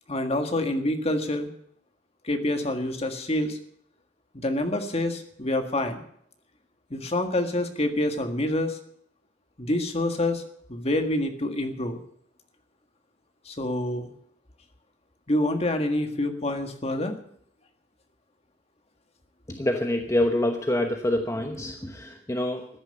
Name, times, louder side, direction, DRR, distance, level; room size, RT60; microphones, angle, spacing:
voice 1, 0.1-1.5 2.2-3.6 4.3-6.0 6.9-8.8 9.6-10.4 10.7-12.0 13.5-14.1 15.3-17.2, left 1 dB, 35° left, 6 dB, 1.7 m, -27 dB
voice 2, 19.5-22.7, left 1 dB, 15° left, 4 dB, 1.0 m, -26 dB
14.5 x 10.5 x 6.9 m, 0.66 s
head